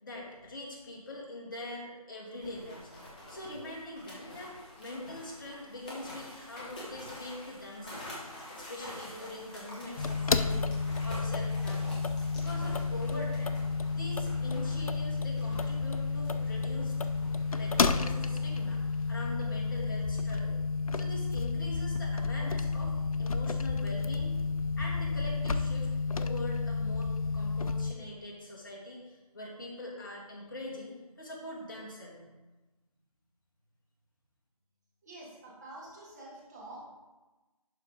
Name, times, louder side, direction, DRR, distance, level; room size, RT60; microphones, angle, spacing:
voice 1, 0.0-2.9 3.3-8.1 8.5-11.9 12.3-13.6 13.9-16.9 17.5-20.6 20.9-24.3 24.8-25.9 26.2-32.2, left 1 dB, 35° left, -3 dB, 1.7 m, -43 dB
sound 1, 2.4-19.2, left 1 dB, 15° left, 0.8 m, -47 dB
sound 2, 10.0-27.9, left 4 dB, 65° left, 0.5 m, -31 dB
voice 2, 35.0-36.8, right 2 dB, 25° right, -5 dB, 1.7 m, -47 dB
11.0 x 3.7 x 3.7 m, 1.1 s
figure-of-eight pair, 160°, 19 cm